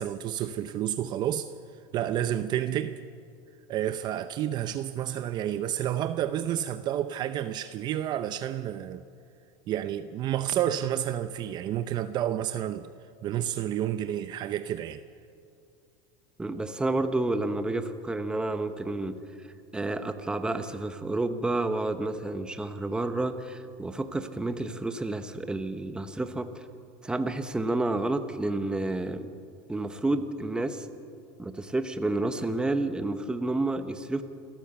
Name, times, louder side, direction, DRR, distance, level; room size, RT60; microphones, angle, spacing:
voice 1, 0.0-1.5 1.9-3.0 3.7-9.0 9.7-12.9 13.2-15.0, right 11 dB, 40° right, 0.6 m, -30 dB
voice 2, 16.4-19.2 19.7-26.6 27.0-29.3 29.7-30.9 31.4-34.2, right 2 dB, 5° right, 1.0 m, -30 dB
27.5 x 14.0 x 7.0 m
supercardioid pair, 145°, 12 cm